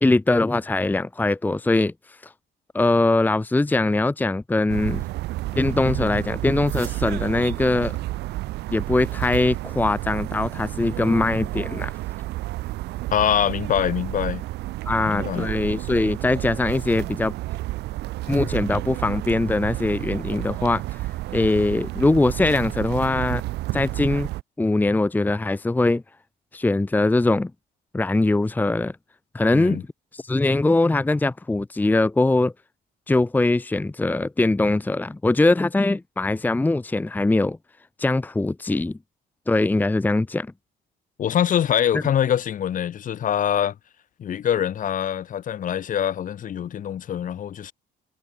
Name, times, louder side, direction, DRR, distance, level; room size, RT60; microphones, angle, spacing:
voice 1, 0.0-1.9 2.2-2.3 2.7-5.0 5.5-7.9 8.7-11.9 14.9-17.3 18.3-21.0 21.3-23.4 23.7-24.3 24.6-26.0 26.5-27.5 27.9-28.9 29.3-29.8 30.1-32.5 33.1-37.6 38.0-39.0 39.5-40.5, left 2 dB, 10° left, 1.0 m, -22 dB
sound 1, 4.7-24.4, right 18 dB, 80° right, 1.1 m, -31 dB
voice 2, 13.1-14.4 15.1-15.5 29.5-29.8 41.2-43.7 44.2-47.7, left 9 dB, 50° left, 2.9 m, -24 dB
cardioid pair, 110°, 17 cm